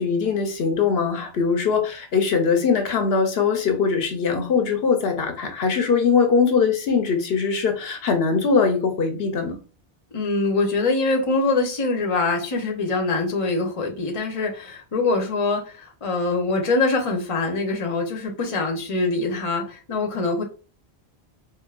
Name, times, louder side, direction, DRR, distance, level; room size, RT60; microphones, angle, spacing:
voice 1, 0.0-9.6, left 5 dB, 75° left, 5 dB, 0.9 m, -21 dB
voice 2, 10.1-20.4, left 3 dB, 35° left, 3 dB, 0.8 m, -24 dB
4.6 x 2.6 x 2.3 m, 0.35 s
omnidirectional pair, 1.0 m